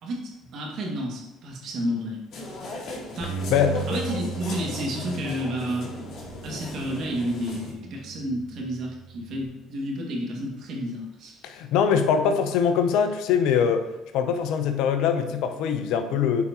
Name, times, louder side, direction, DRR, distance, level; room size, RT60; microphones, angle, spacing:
voice 1, 0.0-2.2 3.1-3.4 3.9-5.9 6.4-11.6, equal, 60° right, -1 dB, 2.1 m, -31 dB
sound 1, 2.3-7.7, left 2 dB, 60° left, 2.2 m, -36 dB
Bass guitar, 3.2-9.5, right 5 dB, ahead, 2.5 m, -38 dB
voice 2, 3.5-3.8 11.4-13.9 14.1-16.4, left 7 dB, 75° left, 8 dB, 0.7 m, -23 dB
9.5 x 4.9 x 3.0 m, 0.98 s
supercardioid pair, 75°, 0 cm